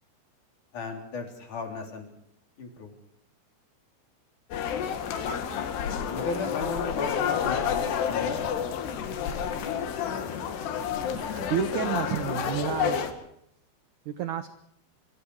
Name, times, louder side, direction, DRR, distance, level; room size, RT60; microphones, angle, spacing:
voice 1, 0.7-2.1 2.6-2.9 6.1-8.4, left 3 dB, 45° left, 3 dB, 4.7 m, -35 dB
sound 1, 4.5-13.1, left 8 dB, 70° left, 3.9 m, -29 dB
voice 2, 11.1-13.1 14.1-14.5, right 9 dB, 70° right, 10 dB, 1.9 m, -30 dB
25.5 x 24.5 x 4.8 m, 0.70 s
omnidirectional pair, 5.1 m